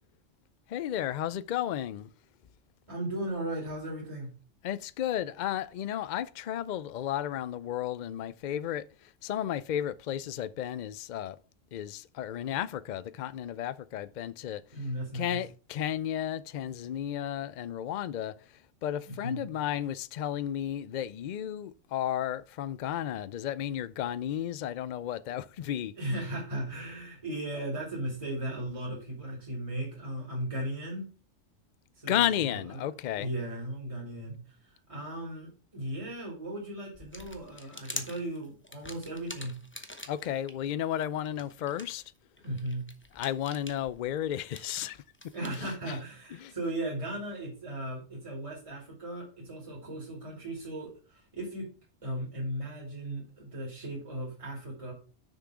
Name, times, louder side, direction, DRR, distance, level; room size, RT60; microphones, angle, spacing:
voice 1, 0.7-2.1 4.6-8.9 9.2-11.4 11.7-14.6 15.1-18.3 18.8-26.3 32.1-33.3 40.1-42.0 43.1-45.0 45.5-46.0 46.3-46.5, left 11 dB, 85° left, 0.4 m, -33 dB
voice 2, 2.9-4.3 14.7-15.4 19.1-19.4 26.0-31.0 32.0-32.9 33.1-34.4 34.7-39.6 42.4-42.8 45.3-51.7 52.0-54.9, right 1 dB, 25° right, 2.7 m, -37 dB
sound 1, 36.9-40.5 41.0-45.6, left 1 dB, 10° left, 0.8 m, -45 dB
6.7 x 6.0 x 4.7 m
omnidirectional pair, 1.3 m